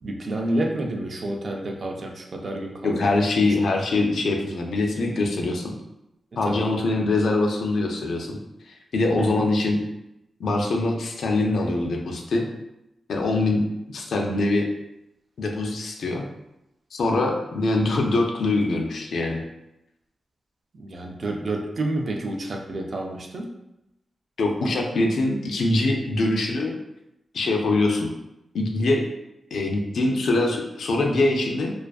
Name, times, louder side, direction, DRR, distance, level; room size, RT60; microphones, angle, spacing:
voice 1, 0.0-3.2 3.4-3.7 6.4-6.7 9.2-9.4 20.8-23.5, right 1 dB, 45° right, 1 dB, 0.3 m, -29 dB
voice 2, 2.8-5.7 6.4-8.4 8.7-9.8 10.4-12.5 13.1-13.6 13.9-14.7 15.4-16.3 16.9-19.4 24.4-26.7 27.3-28.1 28.5-29.1 29.5-31.7, left 2 dB, 75° left, 1 dB, 0.4 m, -23 dB
2.4 x 2.3 x 2.2 m, 0.88 s
wide cardioid pair, 155°, 0 cm